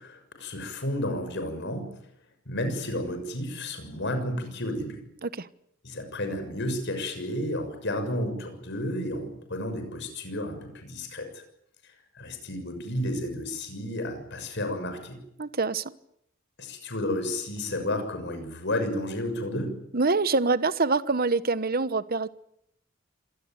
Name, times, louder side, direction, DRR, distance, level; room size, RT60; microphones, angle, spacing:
voice 1, 0.0-1.9 2.4-5.0 5.8-11.4 12.1-15.2 16.6-19.8, left 1 dB, 55° left, 7 dB, 6.7 m, -32 dB
voice 2, 15.4-15.9 19.9-22.3, right 3 dB, 45° right, 15 dB, 1.1 m, -25 dB
26.5 x 19.0 x 9.3 m, 0.74 s
head